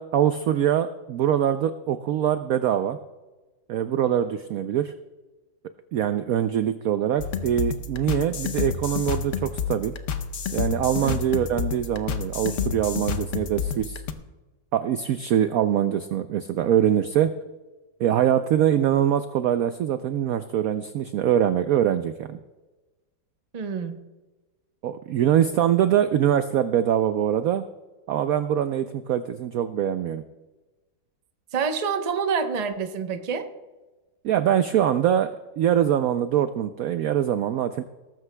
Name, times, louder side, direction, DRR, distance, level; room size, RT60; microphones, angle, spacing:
voice 1, 0.0-3.0 3.7-4.9 5.9-9.9 10.5-14.0 14.7-17.3 18.0-22.4 24.8-27.6 28.1-30.2 34.2-37.8, right 10 dB, 75° right, 10 dB, 0.8 m, -23 dB
sound 1, 7.2-14.1, left 7 dB, 60° left, 0.8 m, -30 dB
voice 2, 23.5-24.0 31.5-33.5, right 6 dB, 40° right, 6 dB, 0.5 m, -27 dB
18.5 x 14.0 x 2.2 m, 1.2 s
omnidirectional pair, 2.0 m